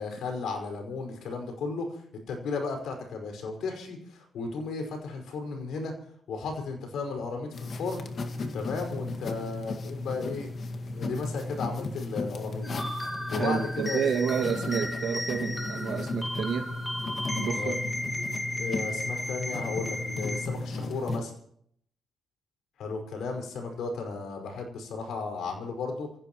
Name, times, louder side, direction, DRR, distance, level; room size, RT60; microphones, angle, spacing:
voice 1, 0.0-2.0 2.3-5.9 6.3-8.0 8.5-10.5 10.9-12.7 13.3-14.1 17.5-17.8 18.6-21.3 22.8-26.1, left 4 dB, 75° left, 5.1 m, -34 dB
sound 1, 7.5-21.2, left 2 dB, 50° left, 1.9 m, -35 dB
sound 2, 12.6-20.5, left 1 dB, 10° left, 3.2 m, -35 dB
voice 2, 13.4-16.7 17.3-17.8, right 7 dB, 70° right, 2.1 m, -30 dB
28.0 x 16.0 x 3.1 m
cardioid pair, 90°, 0 cm